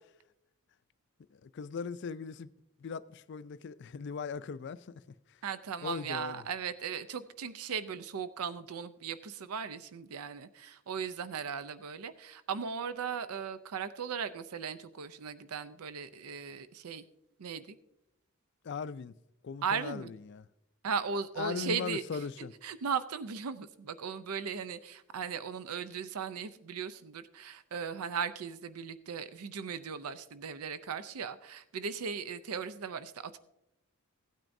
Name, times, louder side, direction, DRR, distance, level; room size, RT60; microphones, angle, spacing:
voice 1, 1.3-2.5 2.8-5.0 5.8-6.4 18.6-19.1 19.4-20.5 21.4-22.5, left 5 dB, 50° left, 0.3 m, -39 dB
voice 2, 5.4-17.0 17.4-17.8 19.6-20.1 20.8-22.0 22.6-33.4, right 6 dB, 80° right, 0.5 m, -37 dB
16.5 x 9.1 x 2.6 m
head